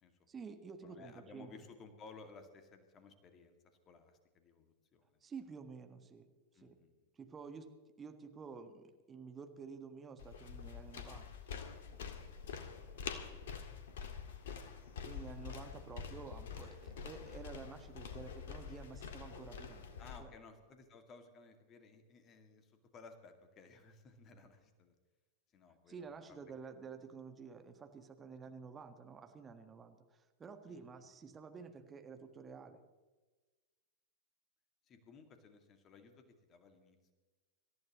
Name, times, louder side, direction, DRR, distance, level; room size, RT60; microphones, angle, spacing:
voice 1, 0.3-1.7 5.2-6.3 6.5-6.8 7.1-7.7 8.0-11.3 15.0-19.8 20.2-20.3 25.9-32.8, right 5 dB, 20° right, 6 dB, 1.6 m, -51 dB
voice 2, 0.8-3.6 3.9-5.0 6.5-6.9 14.4-14.7 20.0-24.9 25.5-26.1 30.7-30.8 34.9-36.2 36.5-37.0, left 4 dB, 30° left, 6 dB, 2.2 m, -57 dB
sound 1, 10.2-20.2, left 7 dB, 60° left, 1.8 m, -46 dB
26.5 x 14.5 x 3.1 m, 1.3 s
figure-of-eight pair, 90°, 0 cm